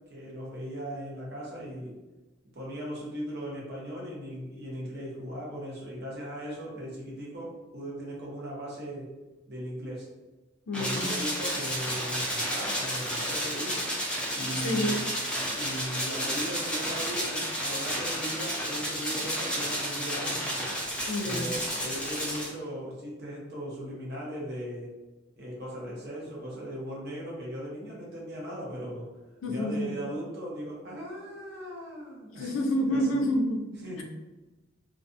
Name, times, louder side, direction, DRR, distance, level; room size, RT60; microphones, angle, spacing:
voice 1, 0.1-2.0 2.5-9.1 9.5-10.1 10.7-13.8 14.3-15.0 15.5-20.5 21.2-24.9 25.4-29.0 29.5-33.3 33.8-34.0, equal, 50° right, -5 dB, 0.9 m, -38 dB
voice 2, 10.7-11.1 14.6-15.0 21.1-21.5 29.4-29.9 32.4-33.6, equal, 75° left, 2 dB, 0.4 m, -28 dB
sound 1, 10.7-22.5, equal, 5° left, 0.6 m, -31 dB
2.4 x 2.3 x 2.6 m, 1.1 s
head